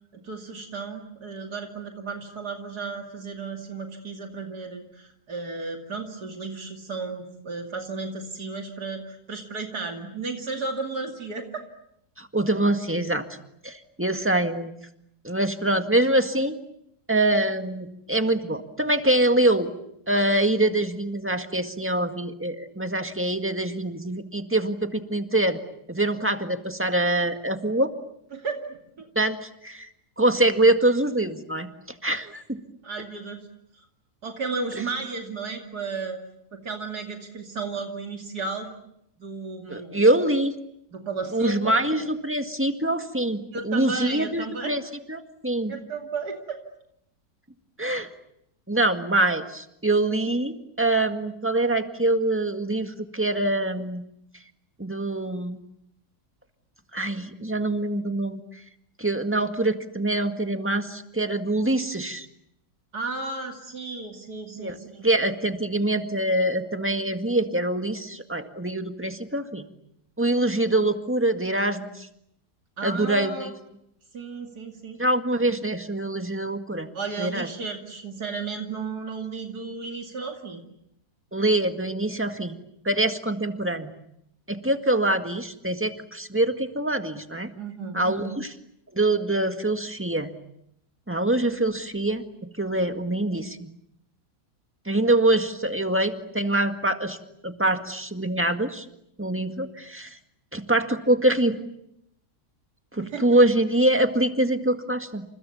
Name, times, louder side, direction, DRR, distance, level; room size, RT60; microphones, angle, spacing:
voice 1, 0.1-11.6 28.3-29.1 32.8-33.5 33.7-33.9 34.2-36.2 36.5-38.7 39.2-40.0 40.9-42.0 43.5-44.7 45.7-46.6 62.9-65.1 72.8-73.5 74.1-75.0 76.9-80.6 87.6-88.3 103.0-103.2, right 4 dB, 80° right, 3 dB, 3.1 m, -34 dB
voice 2, 12.2-13.2 13.6-14.7 15.2-16.5 17.1-19.7 20.1-25.6 25.9-27.9 29.1-29.9 30.2-31.7 32.0-32.6 39.7-40.5 41.3-44.8 45.1-45.7 47.8-48.1 48.7-54.0 54.8-55.6 56.9-58.4 59.0-62.3 64.6-64.8 65.0-69.6 70.2-72.1 72.8-73.5 75.0-76.9 77.2-77.5 81.3-82.6 82.8-83.9 84.5-87.5 87.9-88.5 88.9-90.3 91.1-92.2 92.6-93.7 94.8-97.2 97.4-98.8 99.2-100.2 100.5-101.6 102.9-105.2, right 1 dB, 10° right, 6 dB, 1.8 m, -24 dB
29.0 x 28.0 x 7.1 m, 0.76 s
omnidirectional pair, 1.7 m